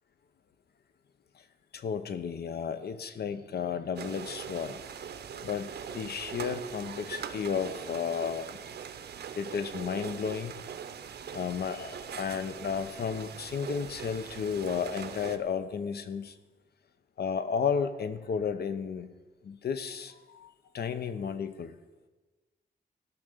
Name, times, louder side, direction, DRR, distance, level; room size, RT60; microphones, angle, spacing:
voice 1, 1.7-4.8 5.4-8.5 9.4-10.6 11.3-16.4 17.2-19.1 19.4-21.7, left 6 dB, 75° left, 11 dB, 0.9 m, -33 dB
sound 1, 4.0-15.4, right 7 dB, 80° right, 0.8 m, -42 dB
16.5 x 6.0 x 6.7 m, 1.2 s
wide cardioid pair, 130°, 17 cm